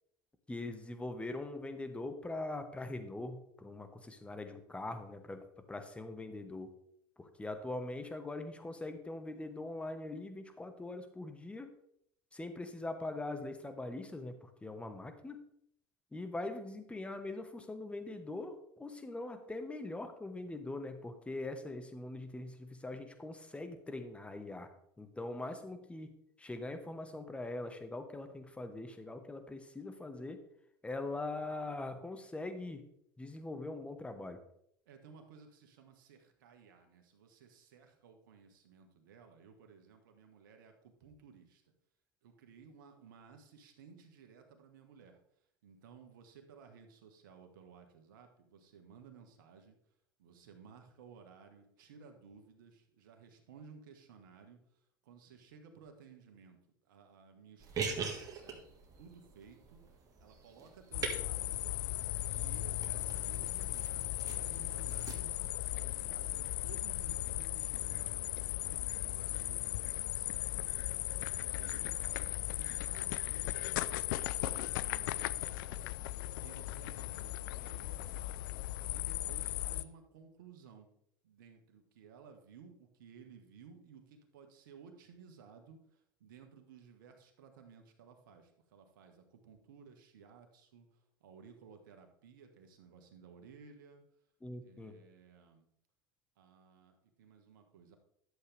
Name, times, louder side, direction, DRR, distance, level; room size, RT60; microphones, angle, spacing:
voice 1, 0.5-6.7 7.2-11.7 12.3-15.4 16.1-24.7 25.0-26.1 26.4-30.4 30.8-32.9 33.2-34.4 94.4-94.9, left 2 dB, 10° left, 7 dB, 1.4 m, -42 dB
voice 2, 34.8-41.6 42.2-45.2 45.6-49.8 50.2-56.6 56.8-59.8 60.2-61.9 62.3-75.9 76.4-78.4 78.9-80.9 81.2-94.0 94.6-95.7 96.4-98.0, right 6 dB, 80° right, 5 dB, 1.6 m, -57 dB
sound 1, 57.6-65.1, right 5 dB, 35° right, 1.9 m, -44 dB
sound 2, 60.9-79.8, left 16 dB, 75° left, 0.4 m, -37 dB
11.0 x 7.4 x 3.5 m, 0.73 s
hypercardioid pair, 85°, 11 cm